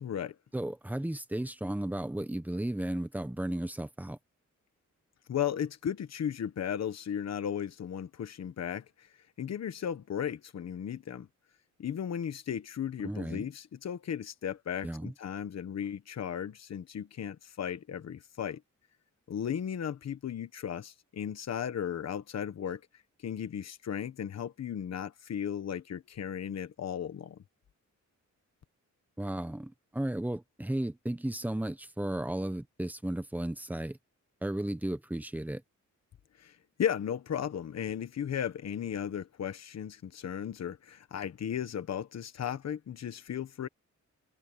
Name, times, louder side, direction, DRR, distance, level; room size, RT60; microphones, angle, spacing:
voice 1, 0.0-0.4 5.3-9.1 9.4-11.3 11.8-18.6 19.3-22.8 23.2-27.4 36.4-43.7, left 9 dB, 55° left, 1.3 m, -35 dB
voice 2, 0.5-4.2 13.0-13.4 14.8-15.1 29.2-34.0 34.4-35.6, right 1 dB, 5° right, 1.1 m, -34 dB
wide cardioid pair, 140°, 31 cm